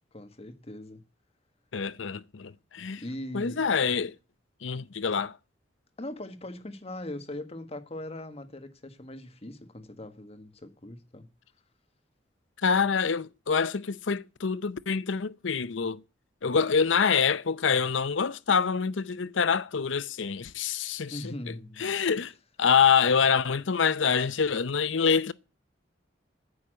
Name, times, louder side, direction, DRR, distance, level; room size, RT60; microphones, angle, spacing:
voice 1, 0.1-1.0 3.0-3.6 6.0-11.3 21.1-21.9, left 1 dB, 35° left, 1.5 m, -40 dB
voice 2, 1.7-3.0 3.3-4.1 4.6-5.4 12.6-16.0 16.4-21.5 21.8-22.3 22.6-25.3, left 6 dB, 80° left, 0.7 m, -26 dB
9.7 x 8.4 x 7.6 m
head